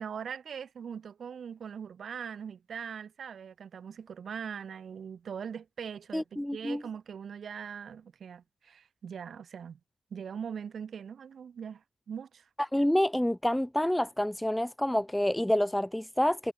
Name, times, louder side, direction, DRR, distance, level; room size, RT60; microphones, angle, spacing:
voice 1, 0.0-9.8 10.1-12.5, right 7 dB, 45° right, 6.0 m, -41 dB
voice 2, 6.1-6.8 12.6-16.5, left 1 dB, 5° left, 0.7 m, -28 dB
wide cardioid pair, 170°, 0 cm